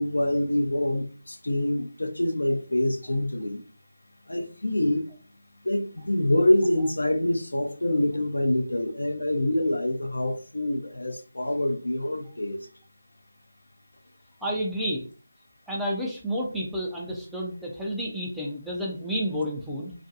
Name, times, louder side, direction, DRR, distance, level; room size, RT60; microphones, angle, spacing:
voice 1, 0.0-3.6 4.3-5.1 5.6-12.6, left 1 dB, 75° left, 0.5 m, -26 dB
voice 2, 14.4-15.1 15.7-19.9, equal, ahead, 0.4 m, -30 dB
2.4 x 2.2 x 2.6 m
figure-of-eight pair, 160°, 0 cm